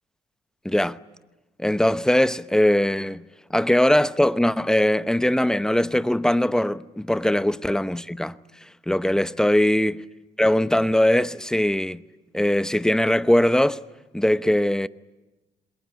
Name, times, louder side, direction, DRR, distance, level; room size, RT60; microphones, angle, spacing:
voice 1, 0.6-1.0 1.6-3.2 3.5-8.4 8.9-10.0 10.4-12.0 12.3-13.8 14.1-14.9, left 1 dB, 5° left, 0.9 m, -21 dB
27.0 x 21.5 x 9.3 m
hypercardioid pair, 50°, 20 cm